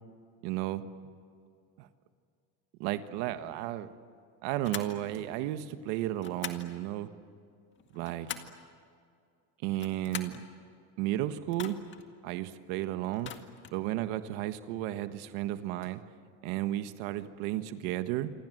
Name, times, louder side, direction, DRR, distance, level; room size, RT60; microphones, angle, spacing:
voice 1, 0.4-0.8 1.8-1.9 2.8-3.9 4.4-7.1 7.9-8.3 9.6-10.4 11.0-11.8 12.2-13.3 13.7-16.0 16.4-18.3, right 14 dB, 75° right, 10 dB, 1.5 m, -33 dB
sound 1, 4.6-5.0 6.2-6.7 7.8-8.6 9.7-10.4 11.5-12.0 13.1-13.8, left 8 dB, 30° left, 2.0 m, -42 dB
28.5 x 24.5 x 7.9 m, 2.3 s
cardioid pair, 150°, 37 cm